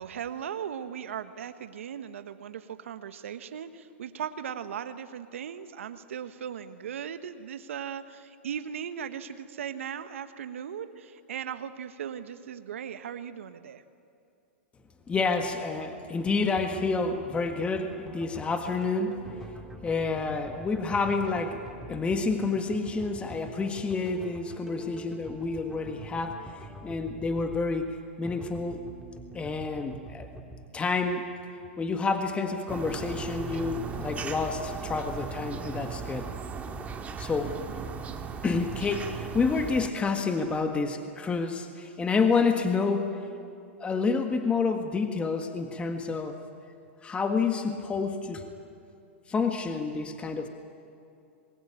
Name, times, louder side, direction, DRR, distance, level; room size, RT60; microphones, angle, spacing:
voice 1, 0.0-13.8 37.4-37.8, right 8 dB, 75° right, 10 dB, 1.4 m, -38 dB
voice 2, 15.1-19.2 19.8-26.4 26.8-28.9 29.3-30.3 30.7-31.3 31.8-36.3 37.2-37.6 38.4-43.2 43.8-46.4 47.0-48.4 49.3-50.5, left 4 dB, 15° left, 6 dB, 1.7 m, -29 dB
sound 1, 16.2-30.7, right 2 dB, 5° right, 2.5 m, -46 dB
sound 2, 32.7-39.9, right 5 dB, 20° right, 2.1 m, -37 dB
26.5 x 21.0 x 8.9 m, 2.6 s
hypercardioid pair, 115°, 7 cm